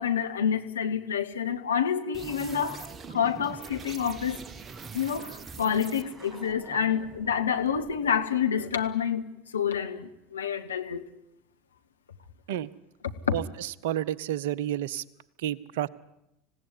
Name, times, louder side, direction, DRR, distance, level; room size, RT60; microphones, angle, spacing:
voice 1, 0.0-4.4 4.9-9.3 9.5-11.0 13.0-13.4, left 8 dB, 75° left, 1.5 m, -28 dB
sound 1, 2.1-8.3, right 5 dB, 25° right, 1.1 m, -44 dB
voice 2, 13.3-15.0 15.4-15.9, right 12 dB, 65° right, 0.8 m, -30 dB
26.0 x 17.0 x 9.9 m
figure-of-eight pair, 75°, 0 cm